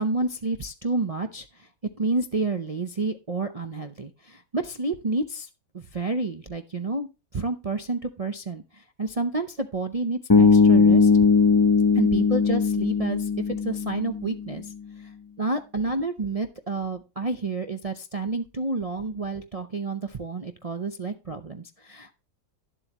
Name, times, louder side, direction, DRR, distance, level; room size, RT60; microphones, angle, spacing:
voice 1, 0.0-1.7 2.0-5.5 5.7-7.1 7.3-11.1 11.9-14.7 15.4-22.1, right 3 dB, 60° right, 6 dB, 0.3 m, -29 dB
Bass guitar, 10.3-14.4, left 5 dB, 25° left, 0.4 m, -19 dB
11.0 x 7.7 x 2.9 m, 0.28 s
omnidirectional pair, 1.8 m